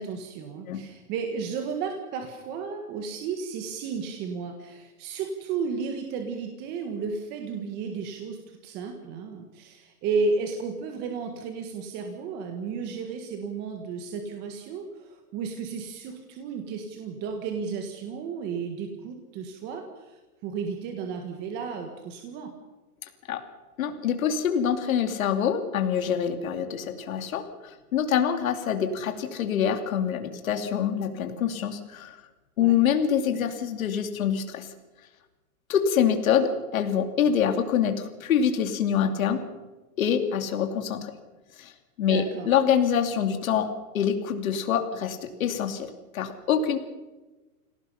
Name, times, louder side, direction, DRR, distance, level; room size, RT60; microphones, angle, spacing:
voice 1, 0.0-22.5 32.6-32.7 42.0-42.5, right 5 dB, 20° right, 4 dB, 1.6 m, -33 dB
voice 2, 23.8-32.2 32.6-34.7 35.7-39.4 40.0-41.1 41.6-41.7 42.0-43.7 43.9-46.8, left 8 dB, 65° left, 6 dB, 2.8 m, -25 dB
26.5 x 17.5 x 5.7 m, 1.2 s
hypercardioid pair, 165°, 44 cm